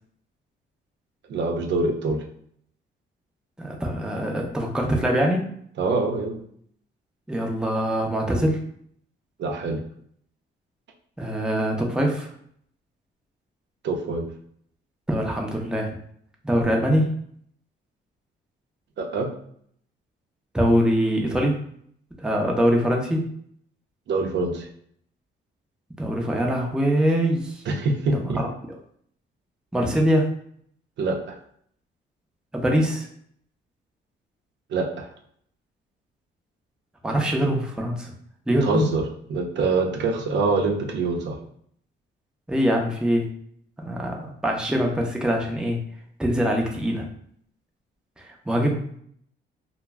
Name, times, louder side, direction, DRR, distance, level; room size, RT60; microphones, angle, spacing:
voice 1, 1.3-2.2 5.8-6.4 9.4-9.8 13.8-14.3 19.0-19.3 24.1-24.7 27.7-28.4 31.0-31.4 34.7-35.1 38.6-39.0 39.3-41.4, right 3 dB, 65° right, 2 dB, 0.5 m, -25 dB
voice 2, 3.6-5.5 7.3-8.6 11.2-12.3 15.1-15.9 16.4-17.1 20.5-21.6 22.2-23.2 26.0-27.6 28.1-28.5 29.7-30.3 32.5-33.1 37.0-38.1 38.5-38.9 42.5-43.3 43.8-45.8 46.2-47.1 48.2-48.8, equal, 5° right, 0 dB, 0.6 m, -23 dB
2.2 x 2.0 x 3.4 m, 0.64 s
cardioid pair, 90°, 20 cm